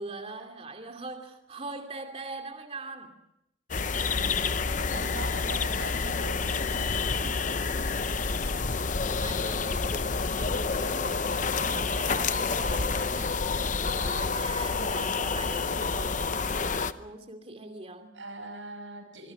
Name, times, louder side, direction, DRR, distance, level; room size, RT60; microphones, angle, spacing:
voice 1, 0.0-3.2 7.0-7.8 8.2-8.6 9.0-13.5 14.0-18.1, right 2 dB, 30° right, 2.7 m, -42 dB
sound 1, 3.7-16.9, left 4 dB, 40° left, 0.8 m, -28 dB
voice 2, 4.1-4.5 4.8-6.9 14.8-15.1 18.1-19.3, right 2 dB, 75° right, 6.0 m, -41 dB
25.0 x 23.5 x 6.1 m
head